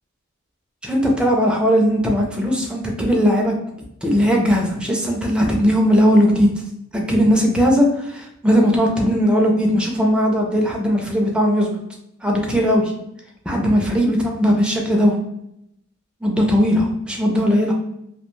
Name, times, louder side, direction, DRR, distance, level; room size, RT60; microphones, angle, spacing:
voice 1, 0.8-3.6 4.0-6.5 6.9-11.7 12.2-12.9 13.5-15.2 16.2-17.7, equal, 5° right, 0 dB, 0.4 m, -18 dB
2.3 x 2.2 x 3.0 m, 0.78 s
head